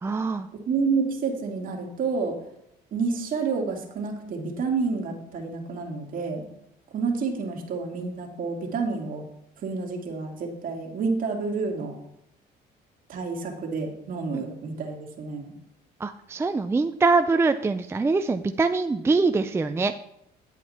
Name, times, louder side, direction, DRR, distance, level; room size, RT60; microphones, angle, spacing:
voice 1, 0.0-0.5 14.3-14.4 16.0-19.9, right 3 dB, 15° right, 9 dB, 0.4 m, -23 dB
voice 2, 0.7-2.4 2.9-6.4 6.9-9.2 9.6-11.9 13.1-15.5, right 4 dB, 55° right, 1 dB, 2.3 m, -29 dB
10.0 x 8.2 x 4.3 m, 0.79 s
cardioid pair, 110°, 17 cm